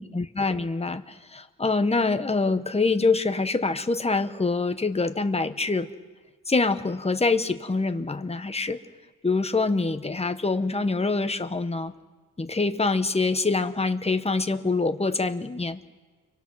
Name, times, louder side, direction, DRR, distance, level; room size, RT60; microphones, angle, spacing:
voice 1, 0.0-5.9 6.5-8.8 9.2-11.9 12.4-15.8, left 3 dB, 15° left, 8 dB, 1.1 m, -25 dB
30.0 x 24.0 x 6.2 m, 1.3 s
wide cardioid pair, 105°, 37 cm